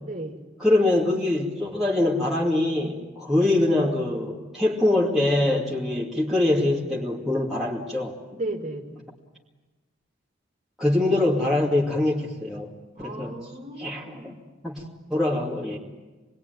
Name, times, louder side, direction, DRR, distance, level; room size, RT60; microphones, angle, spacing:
voice 1, 0.0-0.4 8.3-9.0 12.9-14.4, right 2 dB, 40° right, 1 dB, 2.7 m, -35 dB
voice 2, 0.6-8.2 10.8-12.7 13.0-13.3 13.8-14.1 14.6-14.8 15.1-15.8, left 1 dB, ahead, -7 dB, 2.6 m, -23 dB
27.5 x 21.0 x 9.5 m, 1.2 s
head